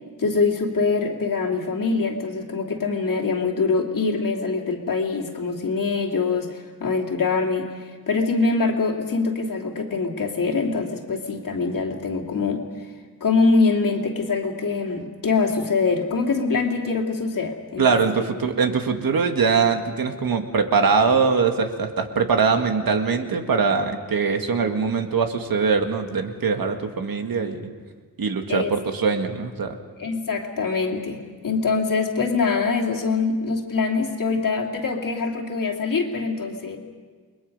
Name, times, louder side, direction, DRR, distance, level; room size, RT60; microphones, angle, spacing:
voice 1, 0.2-12.6 13.2-17.8 28.5-28.7 30.0-36.8, left 4 dB, 60° left, 1 dB, 2.7 m, -24 dB
voice 2, 17.8-27.6 28.2-29.8, right 5 dB, 65° right, 5 dB, 1.8 m, -22 dB
29.5 x 22.0 x 5.4 m, 1.5 s
wide cardioid pair, 160°, 37 cm